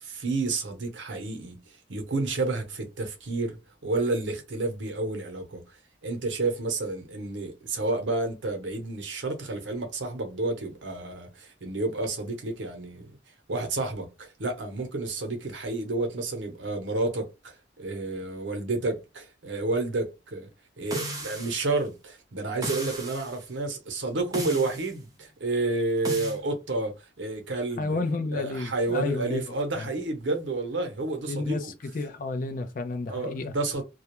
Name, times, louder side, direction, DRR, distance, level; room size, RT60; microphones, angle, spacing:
voice 1, 0.0-13.1 13.5-20.5 20.8-28.0 28.3-31.7 33.1-33.8, right 2 dB, 80° right, 0.7 m, -30 dB
sound 1, 20.9-21.7 22.6-23.3 24.3-24.9 26.0-26.4, right 1 dB, 20° right, 0.6 m, -35 dB
voice 2, 27.8-29.4 29.7-29.9 31.3-31.7 31.9-33.5, left 3 dB, 45° left, 0.4 m, -31 dB
2.3 x 2.1 x 2.9 m
head